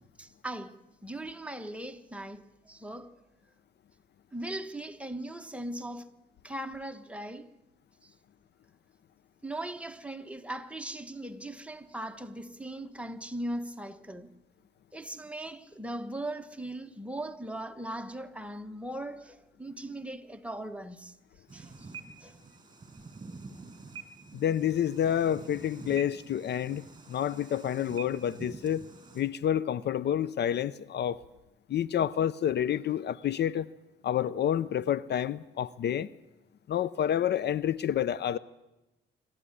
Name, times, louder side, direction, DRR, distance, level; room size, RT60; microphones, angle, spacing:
voice 1, 0.2-3.2 4.3-6.1 6.4-7.5 8.0-8.1 9.4-14.3 14.9-21.1 21.5-21.9 22.2-22.4, right 1 dB, 5° right, 1.5 m, -39 dB
sound 1, 21.5-29.2, right 4 dB, 20° right, 5.9 m, -47 dB
voice 2, 24.3-26.8 27.1-28.8 29.1-31.2 31.7-33.7 34.0-36.1 36.7-38.4, left 10 dB, 60° left, 0.7 m, -29 dB
25.0 x 13.5 x 10.0 m
cardioid pair, 90°, 20 cm